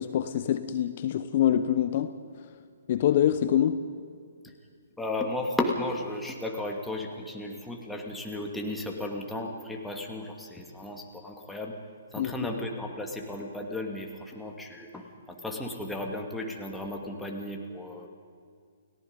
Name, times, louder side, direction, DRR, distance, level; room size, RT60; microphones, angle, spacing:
voice 1, 0.0-2.1 2.9-3.8 12.2-12.3, left 10 dB, 50° left, 11 dB, 0.9 m, -25 dB
voice 2, 5.0-11.7 12.1-18.1, left 1 dB, 5° left, 1 dB, 2.5 m, -34 dB
30.0 x 17.5 x 5.3 m, 2.2 s
figure-of-eight pair, 130°, 0 cm